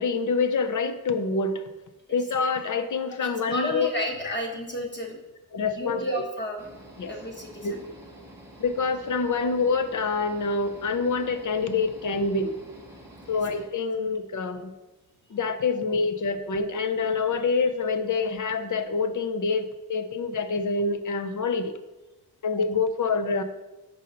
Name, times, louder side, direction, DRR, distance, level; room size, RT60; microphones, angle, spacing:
voice 1, 0.0-1.6 2.1-3.9 4.2-4.3 5.5-6.0 7.0-7.1 7.6-7.7 8.6-12.6 13.3-14.7 15.3-21.7 22.4-23.4, left 4 dB, 55° left, 9 dB, 0.6 m, -26 dB
voice 2, 3.2-5.2 5.6-6.6 7.1-7.8, equal, 30° left, 1 dB, 1.1 m, -32 dB
sound 1, 6.6-13.7, right 1 dB, 5° right, 1.0 m, -48 dB
5.5 x 3.8 x 5.4 m, 1.0 s
wide cardioid pair, 140°, 37 cm